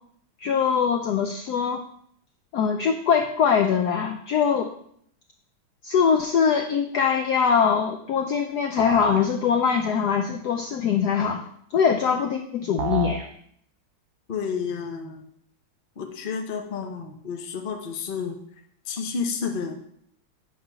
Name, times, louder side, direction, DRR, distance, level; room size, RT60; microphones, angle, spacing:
voice 1, 0.4-1.8 2.5-4.7 5.8-13.3, left 7 dB, 80° left, 5 dB, 0.9 m, -22 dB
sound 1, 8.8-9.2 12.8-13.2, right 7 dB, 75° right, 1.5 m, -29 dB
voice 2, 14.3-15.2 16.0-18.4 18.9-19.7, left 6 dB, 50° left, 2 dB, 0.6 m, -30 dB
8.7 x 3.4 x 5.6 m, 0.67 s
omnidirectional pair, 2.2 m